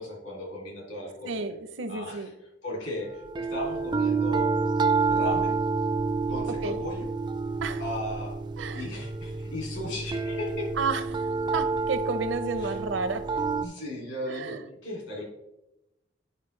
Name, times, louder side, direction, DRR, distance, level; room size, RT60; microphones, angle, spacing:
voice 1, 0.0-1.5 1.9-2.3 2.6-4.5 5.1-5.6 6.3-7.1 7.8-8.4 8.7-10.7 12.6-12.7 13.6-14.5 14.8-15.2, left 1 dB, 65° left, -1 dB, 2.6 m, -36 dB
voice 2, 1.3-2.3 6.6-6.8 7.6-7.8 8.6-8.9 10.8-13.3 14.3-14.6, right 4 dB, 80° right, 11 dB, 0.7 m, -32 dB
sound 1, 3.3-13.7, right 4 dB, 25° right, 0.3 m, -29 dB
9.7 x 4.9 x 3.2 m, 0.93 s
head